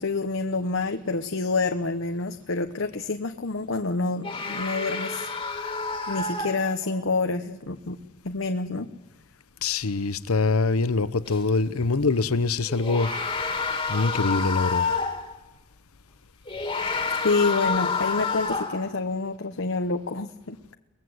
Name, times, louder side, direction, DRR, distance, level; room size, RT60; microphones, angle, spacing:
voice 1, 0.0-5.3 6.1-8.0 8.2-8.9 17.2-20.7, left 3 dB, 60° left, 6 dB, 1.0 m, -27 dB
sound 1, 4.2-7.0 11.2-11.4 12.7-15.3 16.4-18.9, left 4 dB, 25° left, 2.4 m, -29 dB
voice 2, 9.6-13.1 13.9-14.9, left 3 dB, 90° left, 15 dB, 0.9 m, -24 dB
22.5 x 19.0 x 8.0 m, 0.96 s
head